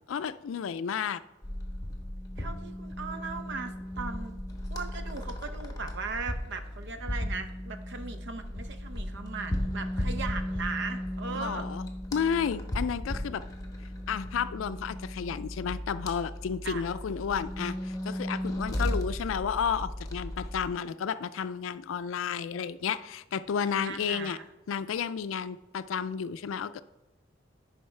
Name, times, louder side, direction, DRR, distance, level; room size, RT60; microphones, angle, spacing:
voice 1, 0.1-1.2 11.3-13.4 14.1-24.4 24.7-26.8, left 7 dB, 90° left, 14 dB, 0.4 m, -32 dB
sound 1, 1.4-20.7, left 1 dB, 20° left, 1.0 m, -36 dB
voice 2, 2.4-4.3 4.7-11.7 16.6-16.8 23.8-24.5, right 4 dB, 65° right, 8 dB, 0.7 m, -38 dB
10.0 x 5.0 x 3.2 m, 0.99 s
head